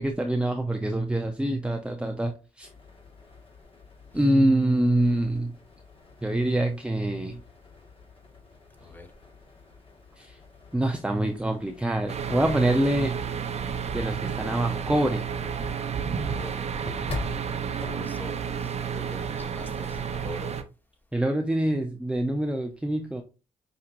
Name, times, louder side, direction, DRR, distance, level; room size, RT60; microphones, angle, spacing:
voice 1, 0.0-2.7 4.1-5.5 6.2-7.4 10.2-10.3 10.7-13.1 13.9-15.2 21.1-23.2, right 1 dB, 5° right, 0.6 m, -25 dB
sound 1, 2.6-18.9, left 3 dB, 40° left, 1.6 m, -45 dB
sound 2, 12.1-20.6, right 7 dB, 50° right, 0.7 m, -31 dB
voice 2, 16.3-16.7 17.0-20.5, left 2 dB, 10° left, 1.2 m, -44 dB
5.7 x 2.6 x 2.5 m
supercardioid pair, 50°, 15 cm